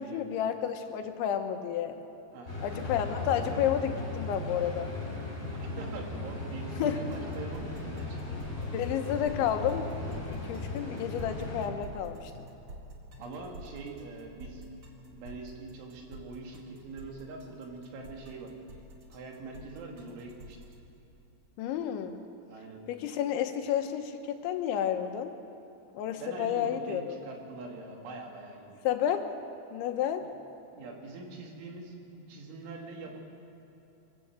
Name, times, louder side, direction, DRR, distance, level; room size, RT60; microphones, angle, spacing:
voice 1, 0.0-2.0 2.6-4.9 6.8-7.0 8.7-12.3 21.6-22.1 22.9-25.3 25.9-27.2 28.8-29.3 29.7-30.3, left 9 dB, 80° left, 6 dB, 3.4 m, -31 dB
sound 1, 2.5-11.7, left 2 dB, 15° left, 5.3 m, -37 dB
voice 2, 5.5-8.4 13.2-14.7 15.1-18.5 19.1-20.6 22.5-22.8 26.1-28.8 30.2-30.3 30.7-32.0 32.3-33.2, right 3 dB, 85° right, 1 dB, 4.8 m, -43 dB
sound 2, 7.1-20.7, equal, 45° right, 1.5 m, -49 dB
24.0 x 13.5 x 8.1 m, 3.0 s
omnidirectional pair, 5.3 m